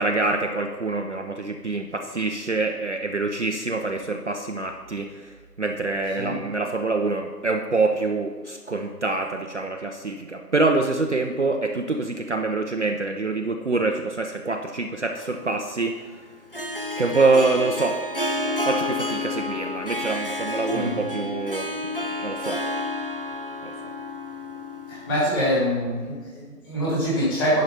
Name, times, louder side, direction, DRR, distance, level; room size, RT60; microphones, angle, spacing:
voice 1, 0.0-16.2 17.0-18.0 18.4-21.7 22.2-22.6 23.6-23.7, right 3 dB, 45° right, 3 dB, 0.6 m, -25 dB
Harp, 15.1-25.6, left 1 dB, 35° left, 0.5 m, -30 dB
voice 2, 20.7-21.0 24.9-27.6, equal, 15° left, -8 dB, 2.1 m, -25 dB
10.5 x 4.9 x 5.4 m, 1.4 s
figure-of-eight pair, 155°, 48 cm